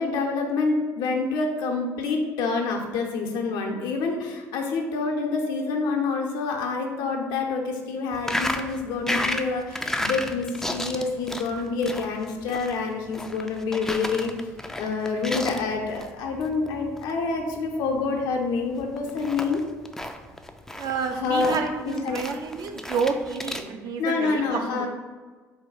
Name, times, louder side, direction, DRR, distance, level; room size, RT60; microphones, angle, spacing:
voice 1, 0.0-14.3 14.8-19.6 21.1-21.6 21.9-22.2 24.0-24.9, left 4 dB, 65° left, 2 dB, 0.7 m, -27 dB
sound 1, 8.1-23.6, left 1 dB, 5° left, 0.4 m, -33 dB
voice 2, 20.8-24.9, right 5 dB, 55° right, 5 dB, 0.5 m, -29 dB
4.1 x 2.3 x 4.5 m, 1.4 s
hypercardioid pair, 60°, 8 cm